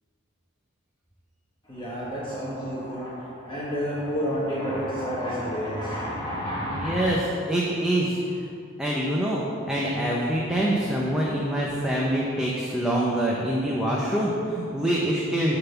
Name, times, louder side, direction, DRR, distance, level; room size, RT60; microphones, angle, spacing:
voice 1, 1.6-7.0, equal, 25° left, -8 dB, 1.4 m, -30 dB
voice 2, 6.7-7.2 7.5-8.5 8.8-15.6, right 1 dB, 5° right, -5 dB, 0.8 m, -25 dB
10.0 x 4.0 x 7.0 m, 2.5 s
head